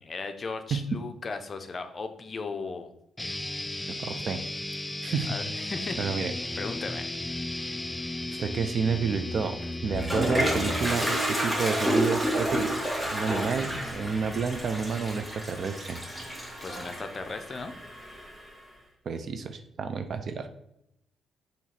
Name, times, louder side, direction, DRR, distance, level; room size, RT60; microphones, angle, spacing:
voice 1, 0.0-2.9 5.3-6.0 6.6-7.1 10.2-10.6 16.6-17.7, left 4 dB, 40° left, 7 dB, 0.8 m, -36 dB
sound 1, 3.2-11.2, left 1 dB, 15° left, 0.4 m, -35 dB
voice 2, 3.9-4.4 5.0-5.4 6.0-6.3 8.4-12.7 13.1-16.0 19.0-20.5, right 5 dB, 55° right, 9 dB, 0.7 m, -30 dB
Toilet flush, 9.6-18.5, equal, 5° right, 2.0 m, -30 dB
7.4 x 3.0 x 5.9 m, 0.78 s
cardioid pair, 90°, 0 cm